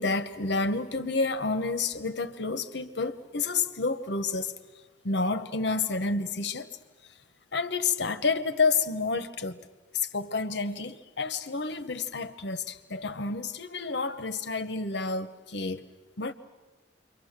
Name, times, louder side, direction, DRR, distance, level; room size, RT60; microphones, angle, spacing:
voice 1, 0.0-4.5 5.0-6.8 7.5-9.6 9.9-15.8 16.2-16.3, left 4 dB, 70° left, 1.1 m, -29 dB
28.5 x 23.5 x 6.7 m
head